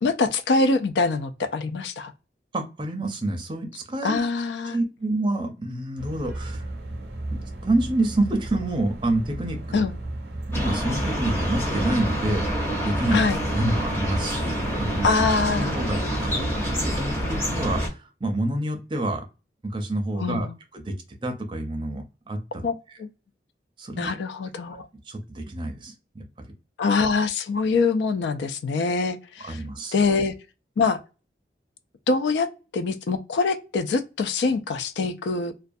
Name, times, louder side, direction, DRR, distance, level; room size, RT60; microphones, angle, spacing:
voice 1, 0.0-2.1 4.0-4.8 9.7-9.9 13.1-13.4 15.0-15.7 20.2-20.5 22.6-22.7 23.0-23.1 24.0-24.9 26.8-29.6 29.9-30.3 30.8-31.0 32.1-35.5, left 4 dB, 85° left, 0.4 m, -24 dB
voice 2, 2.5-4.2 4.7-6.7 7.3-9.8 10.5-12.4 12.8-13.2 13.5-15.1 15.6-16.5 16.8-19.2 19.6-20.5 20.7-21.0 21.2-22.7 23.8-24.1 25.1-26.5 29.4-30.0, right 1 dB, 25° right, 0.5 m, -28 dB
sound 1, 6.0-16.4, right 1 dB, 80° right, 0.6 m, -35 dB
sound 2, 10.5-17.9, equal, 15° left, 0.6 m, -27 dB
2.3 x 2.2 x 2.5 m
head